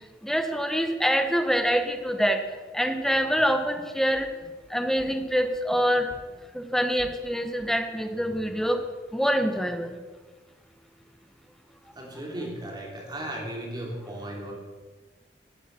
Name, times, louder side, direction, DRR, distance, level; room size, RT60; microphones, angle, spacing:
voice 1, 0.2-2.4 2.7-4.3 4.7-6.1 6.5-8.8 9.1-10.0, equal, ahead, 6 dB, 1.1 m, -25 dB
voice 2, 11.9-14.5, right 1 dB, 25° right, -1 dB, 3.1 m, -36 dB
12.0 x 8.2 x 7.6 m, 1.3 s
head